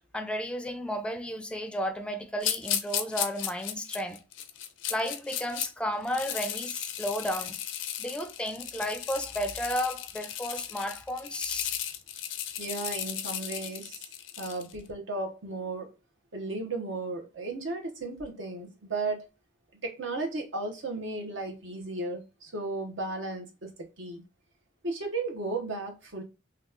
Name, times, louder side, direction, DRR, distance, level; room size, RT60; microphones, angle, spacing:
voice 1, 0.1-4.2 4.9-7.6 8.0-11.8, equal, 5° left, 0.3 m, -33 dB
sound 1, 2.4-5.7 6.0-14.7, left 10 dB, 75° left, 0.5 m, -35 dB
voice 2, 12.6-14.0 14.4-15.9 16.3-19.3 19.8-24.2 24.8-26.2, right 2 dB, 75° right, 0.9 m, -35 dB
2.9 x 2.3 x 3.6 m
head